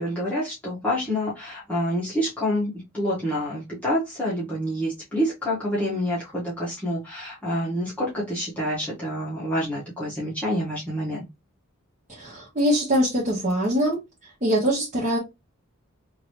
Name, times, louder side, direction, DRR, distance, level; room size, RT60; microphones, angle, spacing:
voice 1, 0.0-11.2, equal, 5° left, 1.0 m, -27 dB
voice 2, 12.1-14.0 14.4-15.2, equal, 35° right, 1.2 m, -23 dB
2.9 x 2.6 x 3.0 m
head